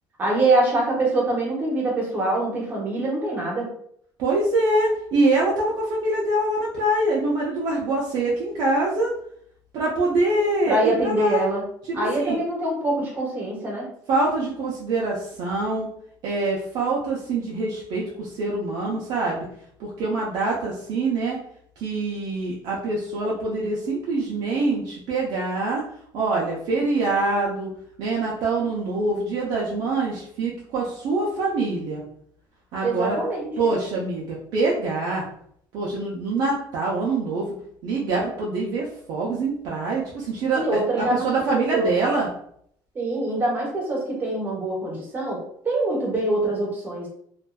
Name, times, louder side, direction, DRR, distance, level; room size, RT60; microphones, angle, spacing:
voice 1, 0.2-3.7 10.7-11.6 11.9-13.9 32.8-33.7 40.5-41.9 42.9-47.1, right 2 dB, 25° right, -3 dB, 0.8 m, -24 dB
voice 2, 4.2-9.1 9.7-11.4 11.9-12.4 14.1-15.9 16.2-19.5 19.8-21.4 21.8-25.8 26.1-27.7 28.0-32.0 32.7-33.2 33.6-35.2 35.7-37.5 37.8-42.3, right 2 dB, 60° right, -4 dB, 0.5 m, -24 dB
2.5 x 2.2 x 2.2 m, 0.67 s
cardioid pair, 150°, 8 cm